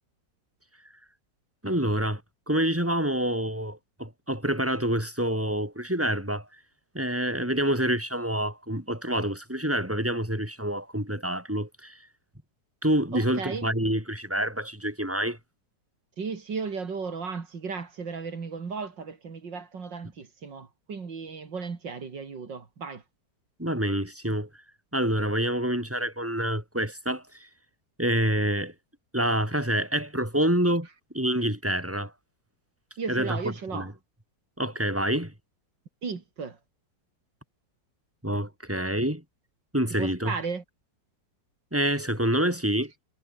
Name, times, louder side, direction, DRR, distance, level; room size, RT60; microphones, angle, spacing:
voice 1, 1.6-2.2 2.5-6.5 6.9-12.0 12.8-15.4 23.6-24.5 24.9-27.5 28.0-28.7 29.1-30.9 31.1-32.1 33.1-33.4 33.7-33.9 34.6-35.3 38.2-39.2 39.7-40.3 41.7-42.9, right 1 dB, 5° right, 6.4 m, -27 dB
voice 2, 13.1-13.7 16.2-23.0 33.0-33.9 36.0-36.6 40.0-40.6, right 5 dB, 80° right, 3.4 m, -35 dB
omnidirectional pair, 1.9 m